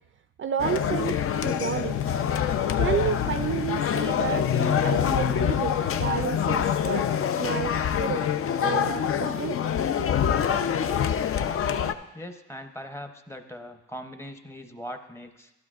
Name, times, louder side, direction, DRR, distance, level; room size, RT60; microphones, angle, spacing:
voice 1, 0.4-2.0 2.8-7.1 7.4-8.3 8.6-9.6 10.0-10.1, right 7 dB, 40° right, 9 dB, 0.4 m, -31 dB
sound 1, 0.6-11.9, left 8 dB, 50° left, 0.5 m, -25 dB
voice 2, 12.1-15.5, equal, 10° left, 6 dB, 0.8 m, -40 dB
12.0 x 11.5 x 2.4 m, 0.98 s
cardioid pair, 90°, 30 cm